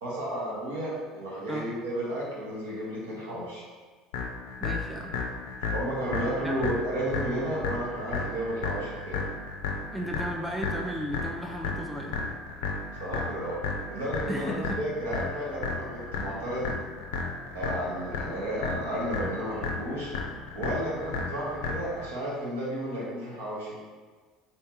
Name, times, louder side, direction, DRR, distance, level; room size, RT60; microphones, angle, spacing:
voice 1, 0.0-3.6 5.7-9.2 13.0-13.6 13.9-16.8 17.5-20.1 20.5-23.8, right 1 dB, 70° right, -5 dB, 1.0 m, -32 dB
sound 1, 4.1-22.1, left 4 dB, 65° left, 0.4 m, -33 dB
voice 2, 4.6-5.1 6.4-6.7 9.9-12.2 14.3-14.8, equal, 5° right, 0 dB, 0.4 m, -34 dB
3.3 x 2.8 x 3.0 m, 1.4 s
figure-of-eight pair, 65°, 0 cm